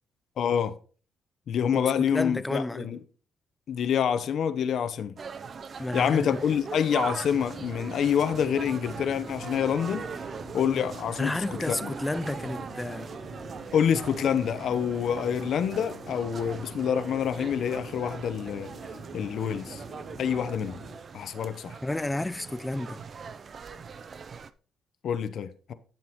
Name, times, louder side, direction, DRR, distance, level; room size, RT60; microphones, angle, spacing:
voice 1, 0.4-0.8 1.5-3.0 3.7-5.2 5.9-10.0 10.5-11.9 13.7-18.7 19.1-19.8 20.2-20.8 21.1-21.8 25.0-25.7, left 8 dB, 65° left, 0.7 m, -27 dB
voice 2, 1.7-3.0 5.8-6.4 11.2-13.1 21.8-23.0, left 2 dB, 15° left, 0.3 m, -31 dB
sound 1, 5.2-24.5, right 5 dB, 45° right, 0.5 m, -41 dB
sound 2, 7.2-21.0, right 2 dB, 80° right, 3.0 m, -44 dB
9.5 x 7.3 x 3.0 m
cardioid pair, 90°, 0 cm